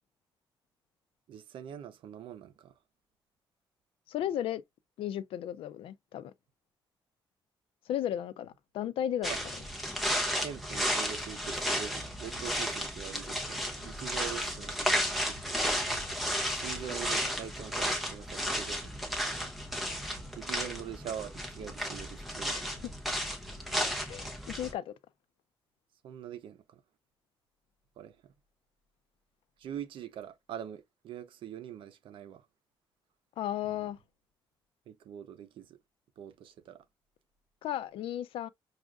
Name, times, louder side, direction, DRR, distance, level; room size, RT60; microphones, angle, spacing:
voice 1, 1.3-2.7 9.3-9.4 10.4-15.6 16.6-18.9 20.3-22.7 26.0-26.8 28.0-28.2 29.6-32.4 33.8-33.9 34.9-35.8 36.2-36.8, right 9 dB, 70° right, 0.7 m, -43 dB
voice 2, 4.1-4.6 5.0-6.3 7.9-9.3 22.5-22.7 24.1-24.9 33.4-34.0 37.6-38.5, left 11 dB, 85° left, 0.4 m, -34 dB
sound 1, 9.2-24.7, equal, ahead, 0.9 m, -33 dB
6.1 x 2.4 x 2.3 m
cardioid pair, 170°, 9 cm